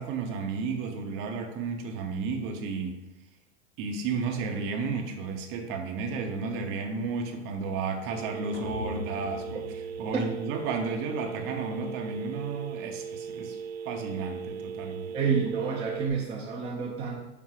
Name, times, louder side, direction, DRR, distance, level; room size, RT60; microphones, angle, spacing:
voice 1, 0.0-3.0 3.8-9.6 10.0-13.6 13.8-15.1, right 4 dB, 40° right, 4 dB, 0.9 m, -33 dB
Telephone, 8.1-16.1, right 7 dB, 60° right, 0.6 m, -38 dB
sound 1, 8.5-10.8, left 2 dB, 30° left, 1.0 m, -41 dB
voice 2, 15.1-17.2, right 5 dB, 15° right, -2 dB, 0.6 m, -29 dB
5.9 x 3.5 x 4.8 m, 0.98 s
hypercardioid pair, 135°, 35 cm